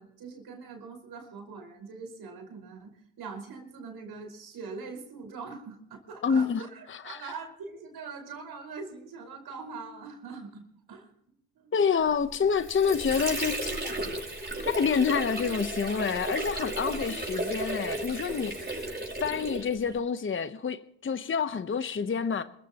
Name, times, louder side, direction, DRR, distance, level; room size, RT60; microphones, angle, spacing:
voice 1, 0.0-10.6 10.9-11.1 11.6-11.7 16.9-17.0, right 4 dB, 70° right, 5.1 m, -43 dB
voice 2, 6.2-6.6 6.9-7.2 11.7-13.8 14.6-18.9 19.2-22.4, left 6 dB, 30° left, 1.0 m, -28 dB
Water / Sink (filling or washing), 12.3-20.0, right 1 dB, 25° right, 7.8 m, -34 dB
27.5 x 15.0 x 3.0 m
supercardioid pair, 65°, 38 cm